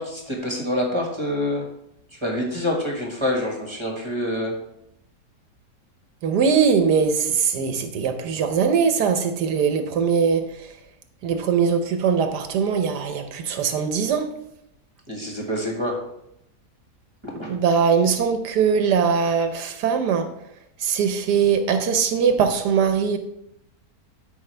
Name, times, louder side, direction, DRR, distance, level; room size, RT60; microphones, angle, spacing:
voice 1, 0.0-1.7 2.2-4.5 15.1-16.0 17.2-17.5, left 1 dB, 20° right, -1 dB, 1.4 m, -26 dB
voice 2, 6.2-10.7 11.2-14.3 17.5-20.3 20.8-23.2, right 6 dB, 80° right, 7 dB, 1.4 m, -21 dB
12.0 x 5.4 x 3.3 m, 0.80 s
omnidirectional pair, 1.7 m